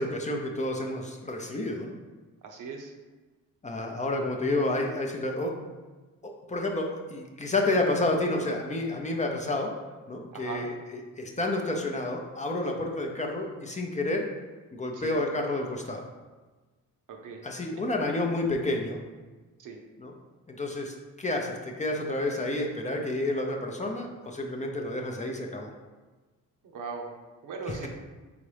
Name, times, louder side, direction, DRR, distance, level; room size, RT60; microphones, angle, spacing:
voice 1, 0.0-1.9 3.6-5.7 6.2-9.7 10.1-14.3 14.7-16.1 17.4-19.0 20.0-20.1 20.5-25.7 27.7-27.8, left 2 dB, 20° left, 1 dB, 0.5 m, -30 dB
voice 2, 2.4-2.9 10.3-10.6 14.9-15.2 17.1-17.4 19.6-19.8 26.6-27.1 27.4-27.9, right 5 dB, 65° right, 2 dB, 0.7 m, -39 dB
4.0 x 3.6 x 3.3 m, 1.3 s
cardioid pair, 100°, 33 cm